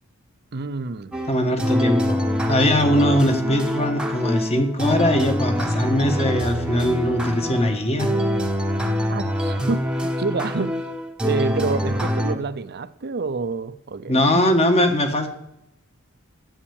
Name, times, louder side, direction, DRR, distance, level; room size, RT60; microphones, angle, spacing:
voice 1, 0.5-1.2 1.5-1.6 9.1-10.8 11.2-14.5, right 4 dB, 50° right, 0.6 m, -28 dB
sound 1, 1.1-12.4, equal, 5° right, 1.0 m, -24 dB
voice 2, 1.3-2.2 2.5-8.1 14.1-15.3, left 1 dB, 30° left, 1.4 m, -21 dB
10.0 x 8.2 x 7.1 m
head